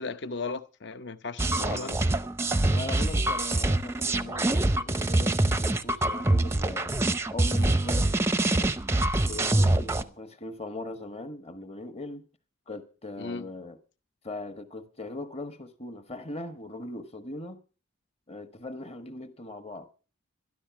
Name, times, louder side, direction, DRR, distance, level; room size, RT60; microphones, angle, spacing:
voice 1, 0.0-2.0 13.2-13.5, left 4 dB, 55° left, 0.8 m, -36 dB
sound 1, 1.4-10.0, right 2 dB, 10° right, 0.6 m, -25 dB
voice 2, 1.5-2.1 2.7-7.0 7.3-8.8 9.2-12.3 12.7-13.8 14.2-17.6 18.3-19.9, left 2 dB, 30° left, 1.3 m, -40 dB
13.0 x 12.0 x 5.9 m
head